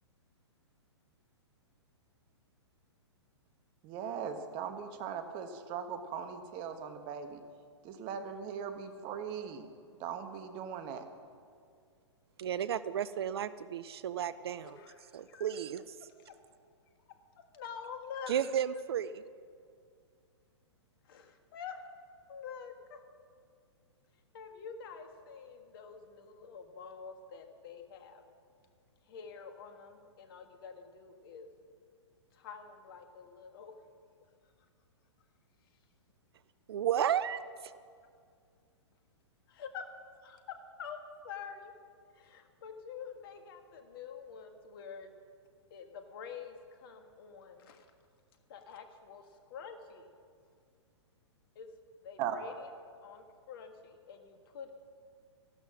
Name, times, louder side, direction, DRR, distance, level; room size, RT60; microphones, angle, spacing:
voice 1, 3.8-7.4 7.8-9.7 10.0-11.0 52.2-52.4, right 7 dB, 35° right, 8 dB, 1.3 m, -39 dB
voice 2, 12.4-14.8 15.1-16.0 18.3-19.2 36.7-37.8, right 9 dB, 60° right, 15 dB, 0.5 m, -33 dB
voice 3, 14.8-15.5 16.3-16.4 17.4-18.4 21.0-21.8 22.3-23.0 24.3-28.2 29.1-31.5 32.3-33.7 39.5-39.9 40.2-41.0 41.2-41.7 42.1-45.1 45.7-47.9 48.5-50.0 51.5-51.7 52.0-52.7 53.0-54.7, left 6 dB, 50° left, 6 dB, 1.7 m, -47 dB
15.0 x 12.0 x 6.2 m, 2.2 s
figure-of-eight pair, 115°, 15 cm